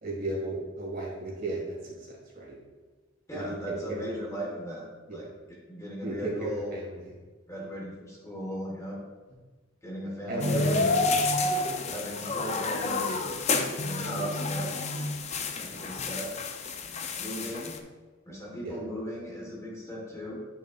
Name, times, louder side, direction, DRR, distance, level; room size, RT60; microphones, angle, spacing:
voice 1, 0.0-1.9 2.3-2.6 3.3-4.1 5.1-5.2 6.0-7.0 10.3-11.2 11.8-11.9 15.5-15.6 18.6-18.8, right 2 dB, 45° right, -3 dB, 2.0 m, -34 dB
voice 2, 3.3-4.9 5.1-6.7 7.5-9.0 9.8-11.0 11.9-13.1 13.8-14.7 15.6-16.3 17.2-17.7 18.3-20.4, equal, 15° left, -3 dB, 1.3 m, -37 dB
sound 1, 10.4-17.8, left 3 dB, 35° left, 0.5 m, -29 dB
8.9 x 5.7 x 2.4 m, 1.3 s
head